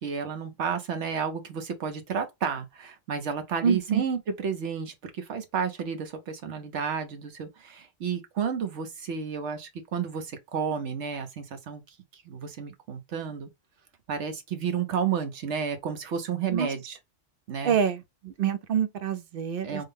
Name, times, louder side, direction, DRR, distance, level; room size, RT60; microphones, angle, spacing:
voice 1, 0.0-11.8 12.2-13.5 14.1-17.0 17.5-17.8 19.6-19.8, right 7 dB, 85° right, 1.1 m, -31 dB
voice 2, 3.6-4.0 16.5-16.7 17.6-19.8, right 7 dB, 60° right, 0.7 m, -26 dB
3.7 x 2.1 x 3.4 m
omnidirectional pair, 1.2 m